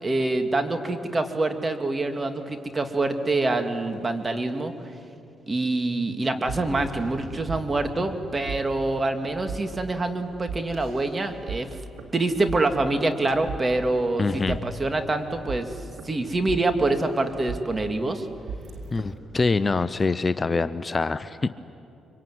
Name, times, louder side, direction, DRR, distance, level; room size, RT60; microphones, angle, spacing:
voice 1, 0.0-4.7 5.5-11.7 12.1-15.8 16.0-18.3, right 2 dB, 30° right, 6 dB, 2.6 m, -26 dB
sound 1, 6.2-19.2, right 4 dB, 80° right, 2.3 m, -38 dB
voice 2, 14.2-14.6 18.9-21.5, left 3 dB, 30° left, 13 dB, 0.8 m, -25 dB
24.5 x 24.5 x 9.6 m, 2.6 s
supercardioid pair, 65°, 0 cm